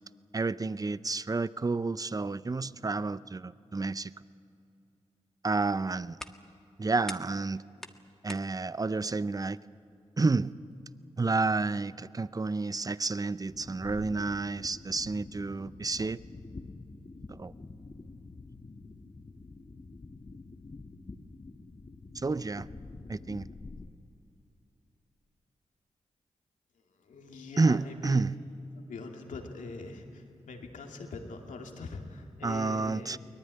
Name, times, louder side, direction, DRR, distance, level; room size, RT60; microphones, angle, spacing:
voice 1, 0.3-4.1 5.4-6.2 6.8-7.6 8.2-9.6 10.2-10.5 11.2-16.2 17.3-17.5 22.1-22.7 23.1-23.5 27.6-28.4 32.4-33.2, right 3 dB, 30° right, 17 dB, 0.6 m, -30 dB
sound 1, 5.6-11.5, equal, 5° left, 1.5 m, -50 dB
sound 2, 13.5-23.9, left 3 dB, 40° left, 1.4 m, -47 dB
voice 2, 26.7-28.2 28.8-33.2, left 3 dB, 80° left, 3 dB, 2.5 m, -43 dB
23.0 x 18.5 x 9.6 m, 2.6 s
supercardioid pair, 40°, 13 cm